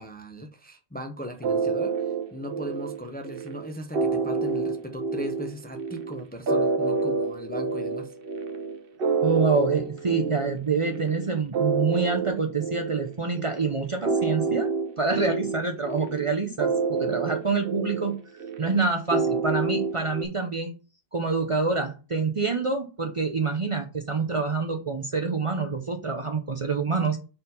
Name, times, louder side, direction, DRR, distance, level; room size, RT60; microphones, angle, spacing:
voice 1, 0.0-8.1, equal, 10° left, 5 dB, 0.6 m, -38 dB
sound 1, 1.4-20.3, right 4 dB, 65° right, 1.0 m, -28 dB
voice 2, 9.2-14.7 15.0-18.2 18.6-20.7 21.1-27.2, right 4 dB, 35° right, 4 dB, 0.6 m, -26 dB
4.4 x 4.0 x 5.4 m, 0.33 s
omnidirectional pair, 1.1 m